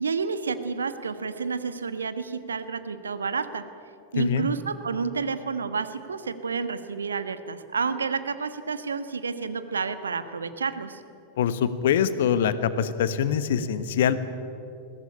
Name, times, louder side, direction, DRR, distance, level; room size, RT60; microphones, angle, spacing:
voice 1, 0.0-3.6 4.1-11.0, right 5 dB, 70° right, 11 dB, 1.3 m, -30 dB
voice 2, 4.2-4.5 11.4-14.2, left 8 dB, 60° left, 13 dB, 1.3 m, -24 dB
22.0 x 16.5 x 10.0 m, 2.6 s
figure-of-eight pair, 90°, 0 cm